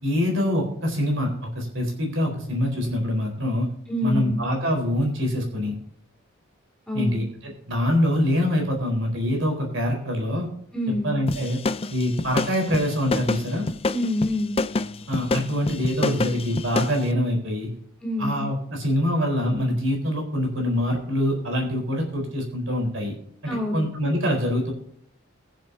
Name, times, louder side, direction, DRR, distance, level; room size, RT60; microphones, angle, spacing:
voice 1, 0.0-3.7 4.0-5.7 6.9-10.5 11.0-11.6 11.9-13.6 15.1-17.7 18.2-23.1 23.7-24.7, equal, 60° right, 2 dB, 4.1 m, -24 dB
voice 2, 3.9-4.4 6.9-7.2 10.7-11.2 13.9-14.6 18.0-18.5 23.5-23.9, left 1 dB, 5° left, -3 dB, 3.8 m, -26 dB
sound 1, 11.3-17.0, left 3 dB, 25° left, 0.4 m, -27 dB
22.0 x 7.6 x 2.7 m, 0.66 s
head